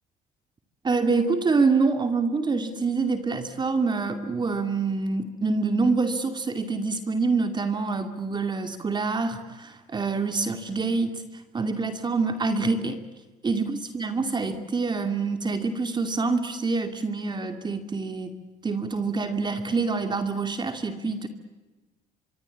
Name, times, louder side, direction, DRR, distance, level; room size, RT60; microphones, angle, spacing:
voice 1, 0.8-11.2 11.5-13.0 13.4-18.4 18.6-21.3, right 4 dB, 25° right, 7 dB, 2.5 m, -26 dB
25.0 x 24.0 x 8.5 m, 1.2 s
cardioid pair, 110°, 17 cm